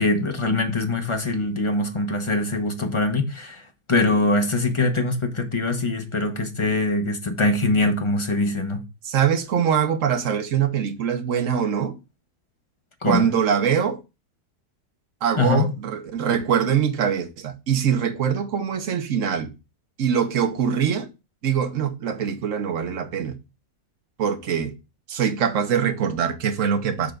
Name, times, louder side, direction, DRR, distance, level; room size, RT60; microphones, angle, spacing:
voice 1, 0.0-3.6 3.9-8.8 13.0-13.3 15.4-15.7, left 2 dB, 25° left, 0.9 m, -23 dB
voice 2, 9.0-12.0 13.0-14.0 15.2-19.5 20.0-21.1 21.4-23.4 24.2-24.7 25.1-27.1, right 8 dB, 55° right, 1.3 m, -23 dB
6.8 x 3.6 x 5.1 m
omnidirectional pair, 1.7 m